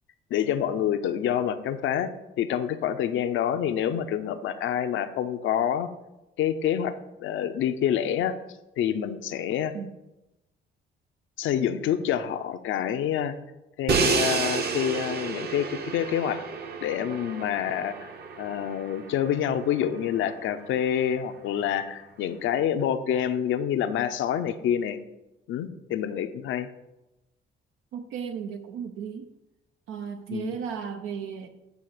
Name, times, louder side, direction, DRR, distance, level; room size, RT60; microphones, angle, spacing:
voice 1, 0.3-2.1 2.4-5.9 6.4-8.4 8.8-9.7 11.4-13.3 13.8-16.4 16.8-18.1 18.4-25.0 25.5-26.7 30.3-30.6, left 9 dB, 80° left, 9 dB, 0.6 m, -27 dB
Crash cymbal, 13.9-19.9, right 5 dB, 55° right, 0.9 m, -30 dB
voice 2, 27.9-29.3 29.9-31.5, right 7 dB, 90° right, 6 dB, 0.7 m, -35 dB
8.4 x 3.4 x 6.6 m, 0.95 s
cardioid pair, 90°, 20 cm